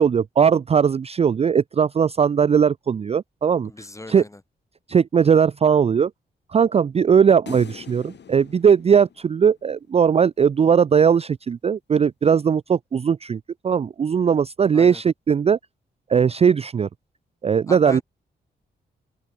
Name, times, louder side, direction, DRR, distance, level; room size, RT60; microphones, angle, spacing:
voice 1, 0.0-3.7 4.1-4.2 4.9-6.1 6.5-15.6 16.1-16.9 17.4-18.0, right 7 dB, 35° right, 0.4 m, -19 dB
voice 2, 3.6-4.4 14.7-15.0 17.7-18.0, left 2 dB, 15° left, 3.9 m, -37 dB
sound 1, 7.5-9.9, left 8 dB, 65° left, 2.8 m, -43 dB
open air
cardioid pair, 80°, 19 cm